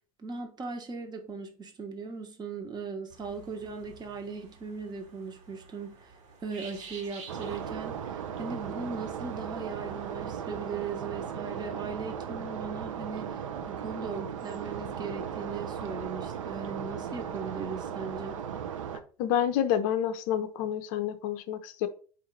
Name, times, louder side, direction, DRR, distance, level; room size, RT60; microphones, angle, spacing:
voice 1, 0.2-6.1 6.4-13.4 13.7-18.4, right 4 dB, 25° right, 5 dB, 1.0 m, -38 dB
sound 1, 3.1-11.1, right 4 dB, 45° right, 1.3 m, -52 dB
sound 2, 7.3-19.0, right 8 dB, 65° right, 0.5 m, -37 dB
voice 2, 19.2-21.9, left 10 dB, 50° left, 11 dB, 0.5 m, -28 dB
4.5 x 2.5 x 4.4 m, 0.40 s
figure-of-eight pair, 70°, 17 cm